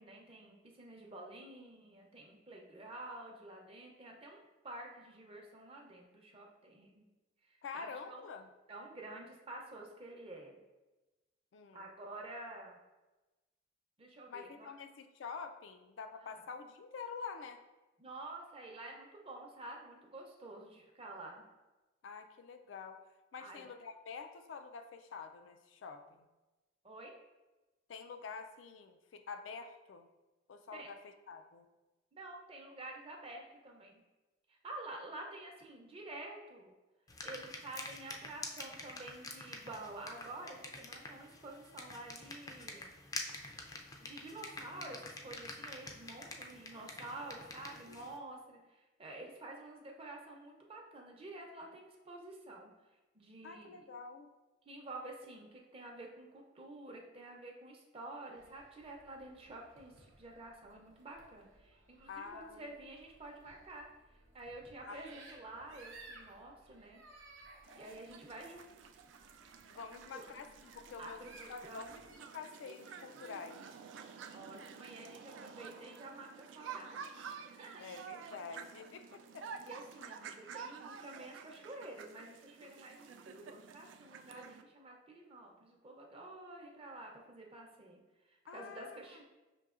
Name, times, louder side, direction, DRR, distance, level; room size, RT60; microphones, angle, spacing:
voice 1, 0.0-7.1 7.4-8.2 8.7-10.6 11.7-12.8 14.0-14.7 16.2-16.4 18.0-21.5 23.4-23.7 26.8-27.1 30.7-30.9 32.1-34.0 34.5-36.7 37.2-43.0 43.7-52.7 53.1-53.9 54.6-67.0 67.7-68.7 69.9-70.2 71.0-72.0 74.1-77.9 79.6-89.2, right 2 dB, 30° right, 0 dB, 0.6 m, -50 dB
voice 2, 7.6-8.5 11.5-11.9 14.3-17.6 22.0-23.0 23.3-26.3 27.9-30.1 30.5-31.7 47.9-48.0 53.4-54.3 62.1-62.7 64.9-65.0 69.7-71.2 71.5-71.8 72.3-73.8 77.8-79.5 88.5-89.0, left 5 dB, 85° left, 7 dB, 0.4 m, -47 dB
sound 1, 37.1-48.2, left 2 dB, 20° left, 0.4 m, -47 dB
sound 2, 58.3-72.2, right 2 dB, 90° right, 0.7 m, -60 dB
sound 3, 67.6-84.6, right 6 dB, 75° right, 0.3 m, -51 dB
6.0 x 2.7 x 2.4 m, 1.1 s
head